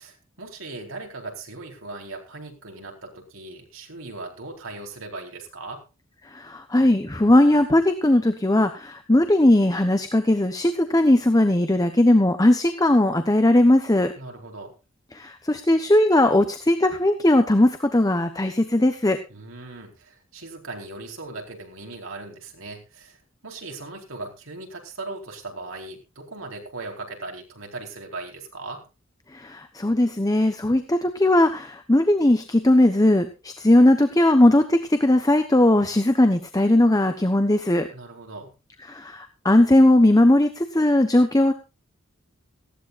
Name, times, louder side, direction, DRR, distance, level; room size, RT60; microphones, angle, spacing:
voice 1, 0.0-5.8 14.2-14.7 19.3-23.2 23.4-28.8 37.9-38.5, right 3 dB, 85° right, 1 dB, 4.3 m, -38 dB
voice 2, 6.3-14.1 15.1-19.2 29.3-37.9 38.9-41.5, left 1 dB, 20° left, 8 dB, 1.0 m, -19 dB
18.5 x 15.5 x 2.5 m, 0.28 s
head